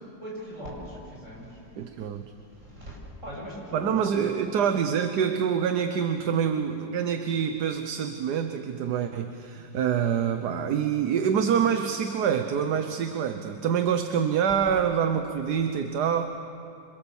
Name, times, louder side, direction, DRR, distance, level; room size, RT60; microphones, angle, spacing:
voice 1, 0.2-1.6 2.8-3.0 3.2-4.3, equal, 40° right, -4 dB, 8.6 m, -39 dB
voice 2, 1.8-2.2 3.7-16.3, right 7 dB, 60° right, 7 dB, 1.4 m, -26 dB
27.0 x 26.5 x 7.1 m, 2.6 s
omnidirectional pair, 2.1 m